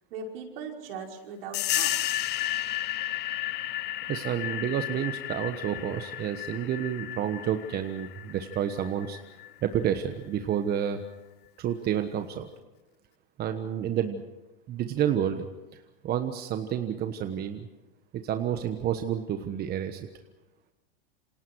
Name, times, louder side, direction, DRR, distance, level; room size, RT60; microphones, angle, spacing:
voice 1, 0.1-2.2, right 5 dB, 70° right, 1 dB, 5.5 m, -39 dB
sound 1, 1.5-9.8, left 14 dB, 35° left, 0.8 m, -33 dB
voice 2, 4.1-9.2 9.6-11.0 11.6-12.5 13.4-14.2 14.7-17.7 18.1-20.1, right 9 dB, 35° right, 7 dB, 1.3 m, -30 dB
28.0 x 26.0 x 4.8 m, 1.0 s
hypercardioid pair, 115°, 30 cm